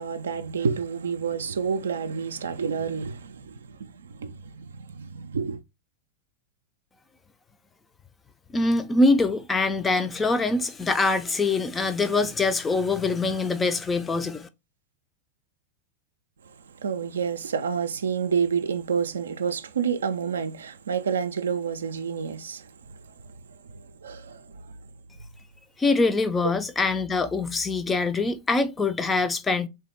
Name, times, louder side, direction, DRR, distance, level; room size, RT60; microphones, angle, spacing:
voice 1, 0.0-5.6 16.4-16.5 16.8-23.0 23.2-23.3 23.7-24.6 26.4-26.5, right 6 dB, 70° right, 0.4 m, -29 dB
voice 2, 8.5-14.5 25.8-29.7, left 3 dB, 15° left, 0.4 m, -24 dB
3.6 x 2.7 x 3.4 m
figure-of-eight pair, 90°, 0 cm